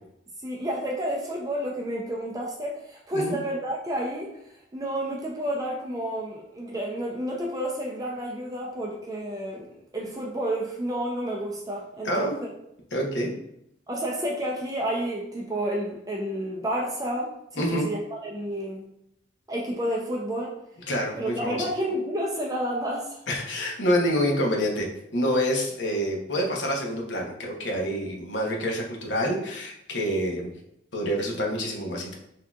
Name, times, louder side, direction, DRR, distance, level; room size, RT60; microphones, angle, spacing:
voice 1, 0.4-4.4 4.7-12.5 13.9-18.8 19.5-20.5 21.2-23.2, right 1 dB, 20° right, -2 dB, 0.5 m, -30 dB
voice 2, 12.9-13.4 17.6-17.9 20.9-21.6 23.3-24.9 25.1-30.5 30.9-32.2, equal, 80° left, 0 dB, 0.9 m, -27 dB
5.9 x 2.8 x 2.4 m, 0.79 s
head